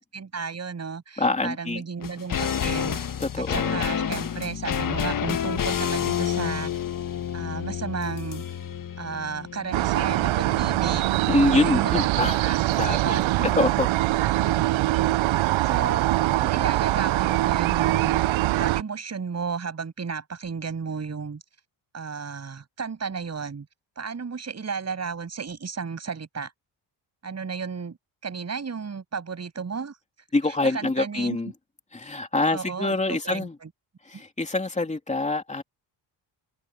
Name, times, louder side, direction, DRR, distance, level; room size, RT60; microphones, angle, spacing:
voice 1, 0.0-3.0 3.4-6.7 7.3-8.4 9.0-11.1 11.5-13.6 15.6-16.1 16.4-18.2 18.6-21.4 21.9-23.7 24.0-26.5 27.2-28.0 28.2-30.0 30.6-31.4 32.5-33.7 34.1-34.2, right 5 dB, 35° right, 7.3 m, -33 dB
voice 2, 1.2-1.8 3.2-3.8 11.3-12.4 12.7-13.2 13.4-13.9 30.3-31.5 31.9-33.5 34.0-35.6, left 2 dB, 15° left, 3.0 m, -25 dB
sound 1, 2.0-11.4 11.7-11.8, left 8 dB, 45° left, 1.3 m, -29 dB
sound 2, 9.7-18.8, right 17 dB, 90° right, 0.6 m, -23 dB
wide cardioid pair, 150°, 46 cm